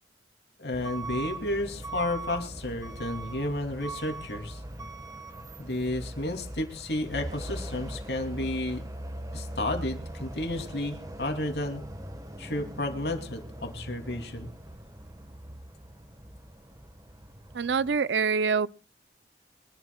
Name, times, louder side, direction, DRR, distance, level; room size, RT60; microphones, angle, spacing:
voice 1, 0.6-4.6 5.6-8.8 9.3-11.8 12.4-14.5, left 1 dB, 65° left, 2.8 m, -32 dB
Truck / Alarm, 0.7-18.0, right 1 dB, 20° right, 1.3 m, -40 dB
voice 2, 17.5-18.7, right 5 dB, 80° right, 0.5 m, -25 dB
24.0 x 11.5 x 2.3 m
head